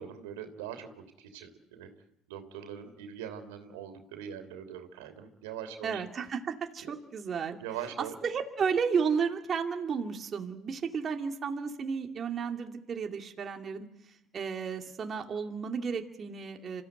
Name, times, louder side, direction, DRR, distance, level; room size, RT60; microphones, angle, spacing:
voice 1, 0.0-1.9 2.3-6.0 6.8-6.9 7.6-8.1, right 9 dB, 85° right, 7 dB, 3.2 m, -42 dB
voice 2, 5.8-7.6 8.2-16.8, right 6 dB, 35° right, 3 dB, 2.4 m, -33 dB
26.0 x 15.5 x 9.2 m, 0.79 s
supercardioid pair, 95°, 0 cm